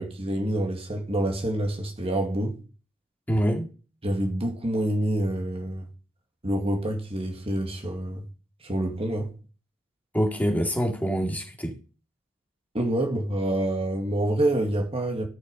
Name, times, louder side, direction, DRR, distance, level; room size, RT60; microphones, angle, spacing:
voice 1, 0.0-2.6 4.0-5.9 6.4-8.2 8.6-9.3 12.7-15.3, right 1 dB, 30° right, 2.1 m, -27 dB
voice 2, 3.3-3.7 10.1-11.8, equal, 10° left, 2.3 m, -25 dB
14.5 x 6.3 x 5.3 m
head